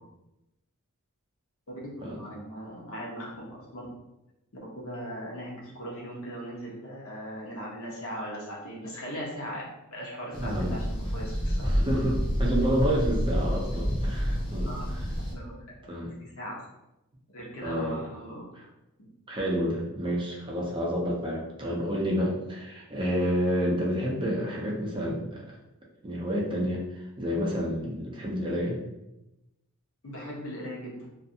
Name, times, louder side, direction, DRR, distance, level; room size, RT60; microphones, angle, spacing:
voice 1, 1.7-3.3 3.7-3.8 4.7-9.6 9.9-11.7 14.7-14.8 15.3-16.6 17.3-18.4 19.0-19.1 30.0-31.0, equal, 65° left, -4 dB, 0.8 m, -39 dB
sound 1, 10.3-15.3, equal, 25° left, 0.7 m, -28 dB
voice 2, 10.3-10.7 11.6-15.1 15.8-16.1 17.6-18.1 18.5-18.7 19.3-25.6 26.0-28.8, equal, 20° right, -3 dB, 0.5 m, -29 dB
2.4 x 2.4 x 2.7 m, 0.92 s
head